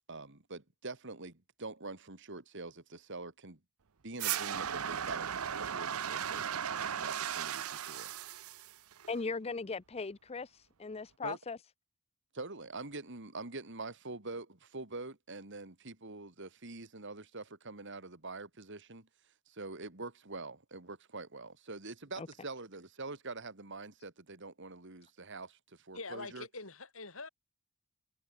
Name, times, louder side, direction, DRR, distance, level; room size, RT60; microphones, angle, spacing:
voice 1, 0.1-3.6 4.0-8.1 11.2-11.4 12.3-19.1 19.5-26.5, right 3 dB, 55° right, 2.5 m, -45 dB
sound 1, 4.2-9.2, right 9 dB, 75° right, 0.7 m, -36 dB
voice 2, 9.1-11.6 22.2-22.3, left 4 dB, 30° left, 0.5 m, -38 dB
voice 3, 25.9-27.3, left 3 dB, 65° left, 5.3 m, -44 dB
head